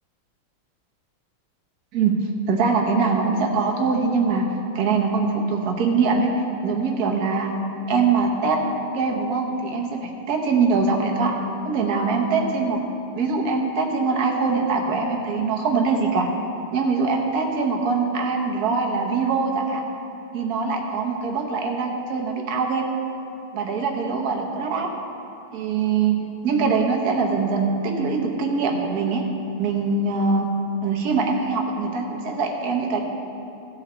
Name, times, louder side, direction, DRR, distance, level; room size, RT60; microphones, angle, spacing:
voice 1, 2.5-4.5 4.7-6.3 6.6-7.5 7.9-11.3 11.6-12.8 13.1-16.3 16.7-19.8 20.3-22.8 23.5-24.9 25.5-26.2 26.4-29.2 29.6-30.5 30.8-33.0, right 4 dB, 50° right, 1 dB, 1.3 m, -23 dB
15.5 x 6.4 x 4.4 m, 2.8 s
omnidirectional pair, 2.4 m